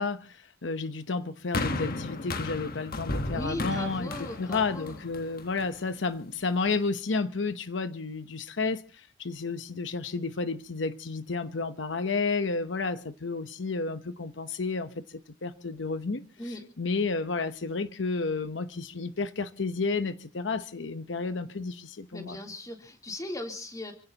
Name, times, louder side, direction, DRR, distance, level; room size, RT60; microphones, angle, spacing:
voice 1, 0.0-4.1 4.4-16.2 16.5-22.4, left 4 dB, 80° left, 0.9 m, -31 dB
sound 1, 1.5-5.9 6.7-6.8, left 2 dB, 55° left, 1.4 m, -34 dB
voice 2, 3.3-5.0 16.4-16.6 22.1-23.9, left 1 dB, 20° left, 3.3 m, -38 dB
28.5 x 16.5 x 2.9 m
head